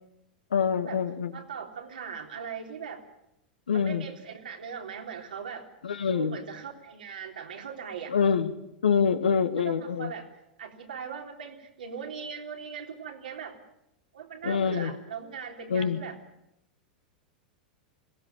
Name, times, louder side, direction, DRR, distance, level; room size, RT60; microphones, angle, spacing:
voice 1, 0.5-1.3 3.7-4.1 5.8-6.4 8.1-10.1 14.4-14.9 15.7-16.0, left 6 dB, 85° left, 9 dB, 1.7 m, -26 dB
voice 2, 1.3-3.0 3.7-5.7 6.0-8.1 9.6-10.3 10.6-13.6 14.1-16.2, right 7 dB, 80° right, 2 dB, 3.6 m, -39 dB
21.5 x 17.0 x 9.1 m, 0.85 s
hypercardioid pair, 100°, 5 cm